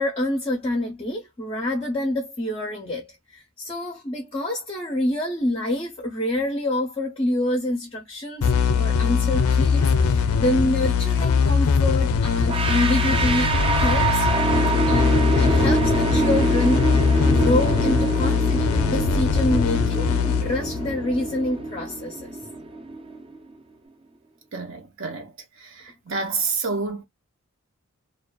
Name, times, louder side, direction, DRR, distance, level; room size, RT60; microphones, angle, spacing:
voice 1, 0.0-14.3 14.9-16.8 17.3-22.4, left 1 dB, 25° left, 0.5 m, -27 dB
sound 1, 8.4-21.7, left 6 dB, 75° left, 0.4 m, -21 dB
sound 2, 12.5-23.4, right 3 dB, 25° right, 0.3 m, -25 dB
voice 2, 24.5-25.3 25.6-27.0, right 4 dB, 60° right, 0.7 m, -29 dB
2.4 x 2.3 x 2.2 m
head